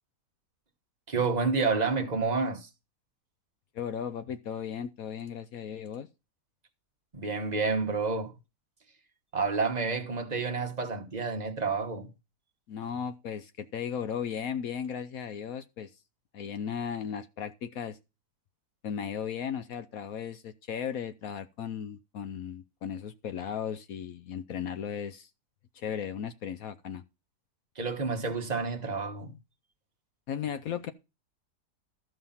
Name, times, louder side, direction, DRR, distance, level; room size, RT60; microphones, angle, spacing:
voice 1, 1.1-2.7 7.1-8.3 9.3-12.1 27.7-29.3, right 4 dB, 30° right, 1.1 m, -29 dB
voice 2, 3.7-6.1 12.7-15.9 16.3-18.0 18.8-25.3 25.7-27.0 30.3-30.9, left 8 dB, 65° left, 1.0 m, -36 dB
13.0 x 5.5 x 5.6 m
omnidirectional pair, 1.8 m